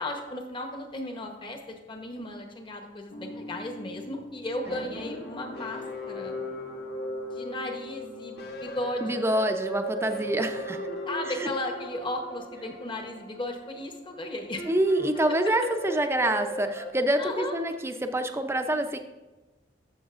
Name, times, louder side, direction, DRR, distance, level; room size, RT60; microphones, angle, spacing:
voice 1, 0.0-1.6 1.9-6.4 7.3-9.2 11.0-14.7 17.2-17.6, left 1 dB, 30° left, 3 dB, 1.0 m, -35 dB
sound 1, 3.1-16.9, equal, 60° left, 1.0 m, -37 dB
voice 2, 9.0-10.8 11.4-11.5 14.7-19.0, right 1 dB, 15° right, 7 dB, 0.5 m, -26 dB
13.0 x 6.3 x 2.5 m, 1.1 s
head